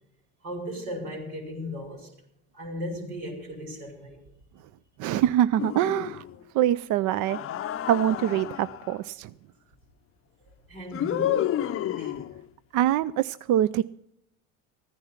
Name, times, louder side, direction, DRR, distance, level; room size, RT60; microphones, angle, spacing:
voice 1, 0.4-2.1 2.5-4.2 10.7-11.5 12.0-12.2, equal, 85° right, 5.1 m, -36 dB
voice 2, 5.0-6.2 6.5-7.4 7.9-9.3 12.7-13.8, right 12 dB, 55° right, 0.5 m, -24 dB
sound 1, 5.6-6.4 7.2-9.0 10.9-12.4, left 11 dB, 35° left, 0.6 m, -30 dB
14.5 x 10.5 x 5.7 m
supercardioid pair, 80°, 38 cm